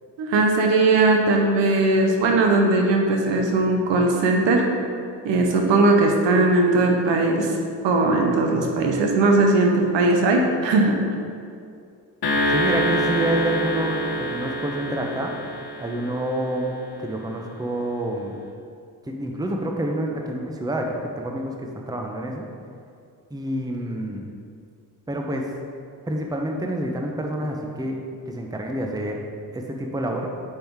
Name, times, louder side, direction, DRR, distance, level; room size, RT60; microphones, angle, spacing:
voice 1, 0.2-4.6 5.2-7.6 7.8-11.0, right 2 dB, 90° right, 1 dB, 0.9 m, -19 dB
sound 1, 12.2-16.7, equal, 60° left, 1.2 m, -26 dB
voice 2, 12.5-15.4 15.8-16.7 17.0-18.4 19.1-22.5 23.3-24.3 25.1-25.5 26.1-28.0 28.3-29.2 29.5-30.3, right 1 dB, 10° right, 1 dB, 0.8 m, -28 dB
5.7 x 5.3 x 4.6 m, 2.4 s
supercardioid pair, 55°, 42 cm